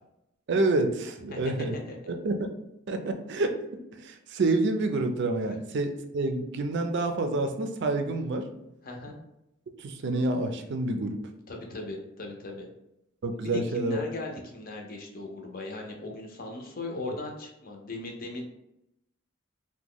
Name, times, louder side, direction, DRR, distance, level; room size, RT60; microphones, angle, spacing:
voice 1, 0.5-1.7 2.1-2.5 2.9-3.6 3.9-8.5 9.8-11.2 13.2-14.0 17.0-17.2, right 2 dB, 60° right, 6 dB, 0.4 m, -28 dB
voice 2, 8.8-9.2 11.5-12.7 13.4-18.4, left 2 dB, 45° left, 1 dB, 0.6 m, -38 dB
3.0 x 2.2 x 3.6 m, 0.85 s
head